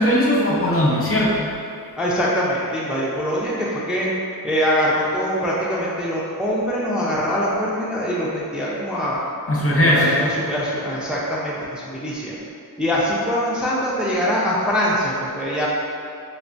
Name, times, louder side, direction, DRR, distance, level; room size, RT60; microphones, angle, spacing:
voice 1, 0.0-1.5 9.5-10.1, equal, 35° left, -5 dB, 0.7 m, -18 dB
voice 2, 2.0-4.1 4.4-9.2 9.7-12.4 12.8-15.7, equal, ahead, -6 dB, 0.5 m, -23 dB
3.2 x 3.1 x 2.6 m, 2.4 s
wide cardioid pair, 60°, 37 cm